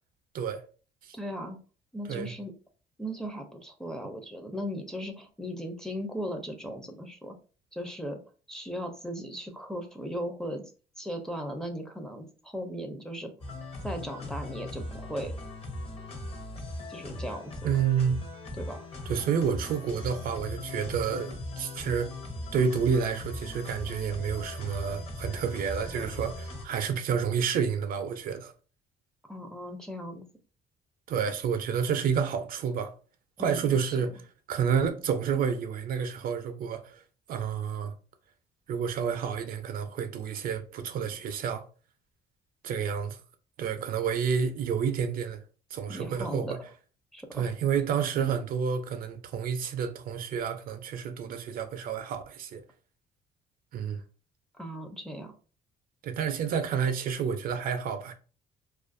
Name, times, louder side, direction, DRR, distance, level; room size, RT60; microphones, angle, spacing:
voice 1, 1.1-1.6 1.9-2.5 3.0-7.4 7.7-8.2 8.5-10.7 11.0-13.3 13.8-15.3 16.9-17.7 18.5-18.8 29.3-30.3 33.4-34.0 45.9-46.6 47.1-47.5 54.6-55.3, equal, 5° left, 0.4 m, -37 dB
sound 1, 13.4-26.7, left 1 dB, 35° left, 0.7 m, -39 dB
voice 2, 17.6-18.3 19.1-22.1 22.5-28.5 31.1-32.9 33.4-34.2 34.5-37.0 37.3-37.9 38.7-41.6 42.6-43.2 43.6-45.4 45.7-46.6 47.3-52.6 53.7-54.0 56.0-58.1, right 7 dB, 60° right, 0.4 m, -29 dB
2.4 x 2.2 x 2.5 m
cardioid pair, 110°, 17 cm